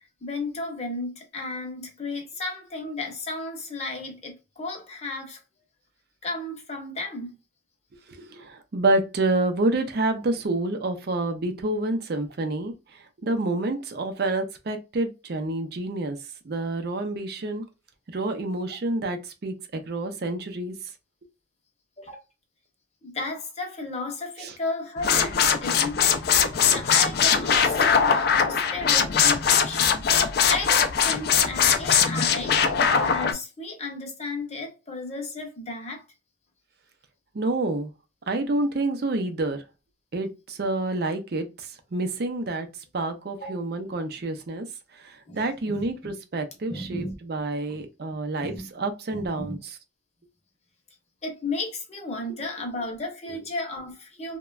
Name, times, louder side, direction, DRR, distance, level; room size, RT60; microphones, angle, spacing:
voice 1, 0.2-5.4 6.2-7.4 22.0-22.2 23.0-36.0 43.3-43.5 45.3-45.4 45.6-46.1 46.7-47.2 47.7-47.8 48.4-48.7 49.1-49.6 51.2-54.4, left 2 dB, 35° left, 0.8 m, -34 dB
voice 2, 8.2-16.2 16.4-17.6 18.1-20.8 24.4-24.5 37.3-37.9 38.3-39.6 40.1-42.7 42.9-44.7 44.9-49.8, right 2 dB, 55° right, 0.5 m, -28 dB
sound 1, 25.0-33.3, left 7 dB, 60° left, 0.4 m, -21 dB
3.0 x 2.2 x 2.3 m
head